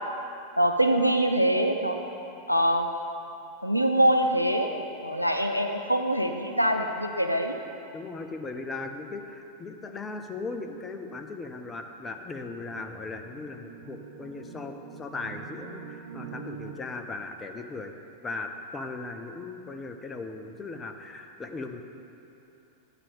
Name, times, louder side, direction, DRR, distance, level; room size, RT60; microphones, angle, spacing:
voice 1, 0.6-2.0 2.5-2.9 3.6-4.7 5.0-7.5, right 1 dB, 90° left, 4 dB, 0.4 m, -24 dB
voice 2, 7.9-17.9 18.2-21.8, left 3 dB, 15° left, 5 dB, 0.6 m, -38 dB
sound 1, 12.0-16.7, right 7 dB, 55° right, 0.7 m, -45 dB
8.7 x 4.2 x 7.1 m, 2.7 s
figure-of-eight pair, 90°, 0 cm